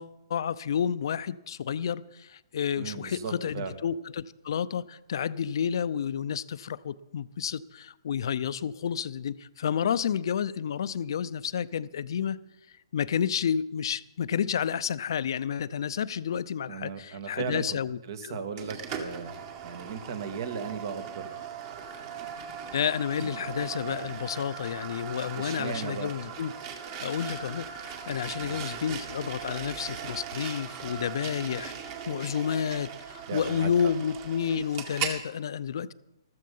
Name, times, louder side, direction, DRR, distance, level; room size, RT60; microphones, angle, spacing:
voice 1, 0.0-12.4 12.9-18.4 22.7-26.5 27.0-35.9, left 8 dB, 65° left, 0.6 m, -30 dB
voice 2, 2.8-3.8 16.7-17.8 18.1-21.3 25.3-26.1 28.4-29.0 33.3-33.9, right 6 dB, 55° right, 1.7 m, -37 dB
sound 1, 18.6-35.2, right 7 dB, 40° right, 2.1 m, -39 dB
14.0 x 13.5 x 5.5 m
hypercardioid pair, 145°, 3 cm